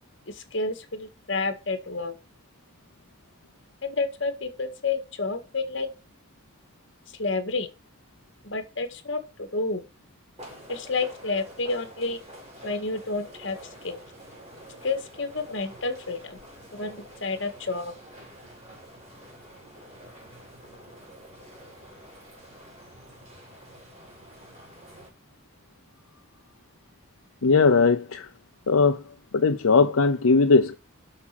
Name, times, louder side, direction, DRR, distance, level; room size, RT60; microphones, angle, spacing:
voice 1, 0.3-2.1 3.8-5.9 7.2-7.7 8.4-9.8 10.7-12.2 12.6-13.6 13.8-14.0 14.8-16.4 16.7-17.9, left 3 dB, 60° left, 1.8 m, -30 dB
sound 1, 10.4-25.1, equal, 30° right, 5.1 m, -47 dB
voice 2, 27.4-28.3 28.7-29.0 29.3-30.8, left 4 dB, 85° left, 0.7 m, -19 dB
7.5 x 6.3 x 6.0 m
head